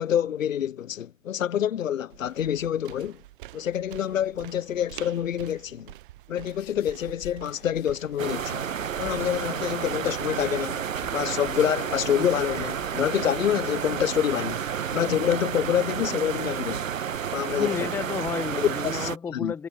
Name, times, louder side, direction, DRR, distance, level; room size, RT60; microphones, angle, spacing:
voice 1, 0.0-3.2 3.5-5.9 6.3-8.7 9.0-10.8 11.1-14.6 14.9-16.9 17.3-17.9 18.8-19.5, left 10 dB, 80° left, 0.6 m, -27 dB
sound 1, 2.1-12.1, right 16 dB, 40° right, 0.9 m, -47 dB
sound 2, 6.5-15.8, left 15 dB, 25° left, 3.6 m, -51 dB
sound 3, 8.2-19.2, right 8 dB, 80° right, 1.0 m, -31 dB
voice 2, 17.6-19.7, left 6 dB, 5° left, 0.6 m, -31 dB
figure-of-eight pair, 120°, 39 cm